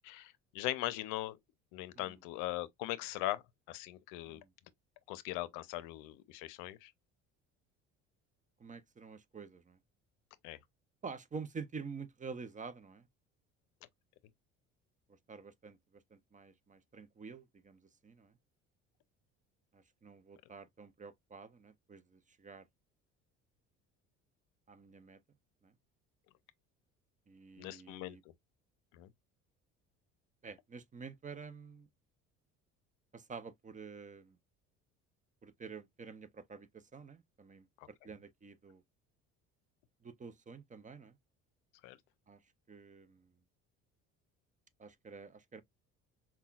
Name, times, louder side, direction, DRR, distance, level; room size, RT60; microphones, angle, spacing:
voice 1, 0.0-1.4 1.7-4.4 5.1-6.9 10.4-10.6 27.6-28.3 28.9-29.1 37.8-37.9 41.8-42.0, left 16 dB, 80° left, 0.6 m, -40 dB
voice 2, 8.6-9.8 11.0-13.1 15.3-18.3 19.7-22.7 24.7-25.2 25.6-25.7 27.3-28.2 30.4-31.9 33.1-34.4 35.4-38.8 40.0-41.2 42.3-42.4 42.7-43.3 44.8-45.6, right 5 dB, 25° right, 0.6 m, -49 dB
5.5 x 2.3 x 2.3 m
supercardioid pair, 80°, 31 cm